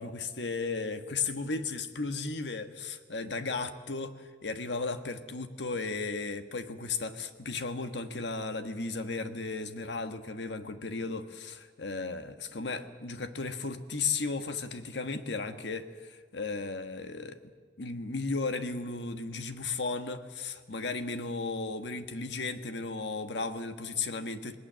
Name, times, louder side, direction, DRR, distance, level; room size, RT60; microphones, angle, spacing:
voice 1, 0.0-17.4 17.8-24.6, left 3 dB, 75° left, 8 dB, 1.4 m, -35 dB
27.0 x 19.5 x 7.6 m, 1.5 s
head